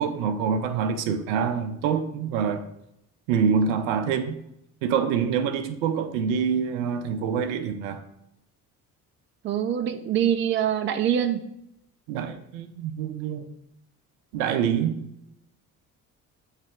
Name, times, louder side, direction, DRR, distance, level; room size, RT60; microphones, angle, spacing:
voice 1, 0.0-2.6 3.3-4.4 4.8-8.0 12.1-13.5 14.3-15.0, right 7 dB, 60° right, 9 dB, 0.7 m, -26 dB
voice 2, 9.4-11.4, right 9 dB, 25° right, 8 dB, 0.5 m, -24 dB
8.1 x 3.2 x 3.7 m, 0.80 s
figure-of-eight pair, 50°, 46 cm